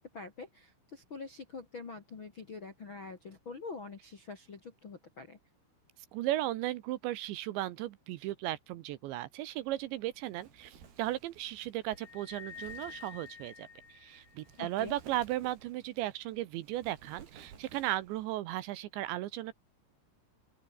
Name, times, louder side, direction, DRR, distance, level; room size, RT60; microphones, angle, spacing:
voice 1, 0.0-5.4 14.6-15.0, left 4 dB, 45° left, 1.7 m, -45 dB
voice 2, 6.1-19.5, right 15 dB, 75° right, 3.0 m, -36 dB
Wind, 9.6-18.3, right 7 dB, 55° right, 5.3 m, -57 dB
sound 1, 11.9-14.6, left 7 dB, 65° left, 6.1 m, -49 dB
open air
omnidirectional pair, 5.6 m